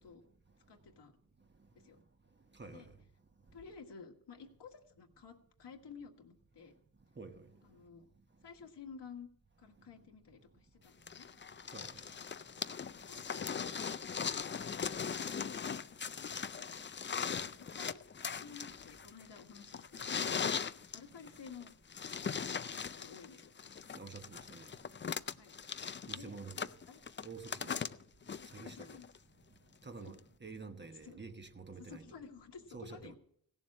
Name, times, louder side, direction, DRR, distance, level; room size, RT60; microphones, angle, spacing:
voice 1, 0.7-1.1 1.8-2.0 2.7-2.9 3.5-6.7 7.6-8.1 8.4-9.3 9.6-11.3 12.9-13.8 17.5-18.0 18.4-20.5 20.9-21.7 22.3-23.5 25.3-25.5 26.1-26.4 26.9-27.0 27.8-27.9 28.6-29.1 30.0-30.1 31.0-31.2 31.8-33.2, left 5 dB, 75° left, 1.7 m, -53 dB
voice 2, 7.2-7.5 11.7-12.0 23.9-24.7 26.1-26.7 27.2-27.8 28.5-28.9 29.8-32.1 32.7-33.1, right 4 dB, 25° right, 1.1 m, -48 dB
sound 1, 11.1-29.2 30.2-30.3, left 6 dB, 30° left, 0.4 m, -40 dB
16.5 x 7.2 x 7.4 m
cardioid pair, 75°, 42 cm